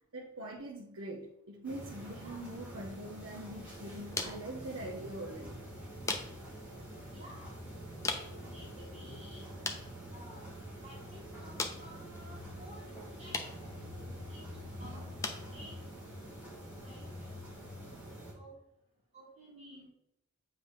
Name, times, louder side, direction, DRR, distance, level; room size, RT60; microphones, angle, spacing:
voice 1, 0.1-5.6, right 1 dB, 65° right, -2 dB, 0.7 m, -43 dB
sound 1, 1.6-18.3, right 1 dB, 5° right, 1.6 m, -47 dB
sound 2, 2.9-18.0, left 3 dB, 15° left, 0.5 m, -45 dB
sound 3, 4.6-18.0, left 3 dB, 60° left, 0.7 m, -52 dB
voice 2, 7.1-7.5 8.1-9.4 10.1-10.4 10.8-12.9 13.2-13.8 14.3-15.8 16.8-17.5 18.3-18.6 19.1-19.9, equal, 30° right, -5 dB, 1.7 m, -54 dB
7.2 x 2.9 x 5.0 m, 0.78 s
head